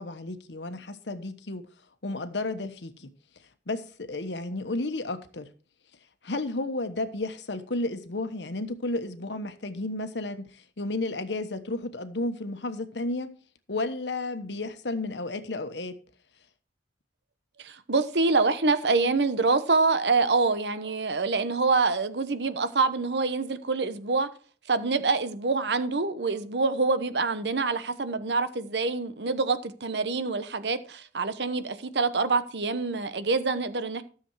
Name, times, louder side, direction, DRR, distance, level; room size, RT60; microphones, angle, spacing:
voice 1, 0.0-1.7 2.0-3.1 3.7-5.5 6.2-13.3 13.7-16.0, left 2 dB, 85° left, 1.2 m, -32 dB
voice 2, 17.6-24.3 24.7-34.0, right 3 dB, 75° right, 1.0 m, -26 dB
13.0 x 7.1 x 4.7 m
head